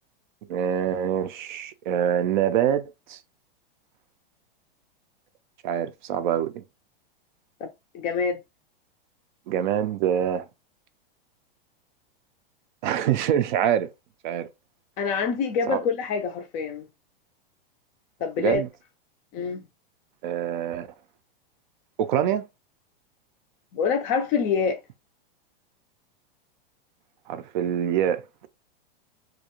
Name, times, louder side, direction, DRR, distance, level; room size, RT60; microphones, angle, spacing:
voice 1, 0.5-2.8 3.1-3.2 5.6-6.6 9.5-10.4 12.8-13.9 14.2-14.5 15.7-15.8 18.4-18.7 20.2-20.9 22.0-22.4 27.3-28.5, right 9 dB, 55° right, 0.4 m, -25 dB
voice 2, 7.9-8.4 15.0-16.9 18.2-18.6 19.3-19.7 23.7-24.8, left 5 dB, 25° left, 0.4 m, -26 dB
2.5 x 2.2 x 2.8 m
supercardioid pair, 140°, 29 cm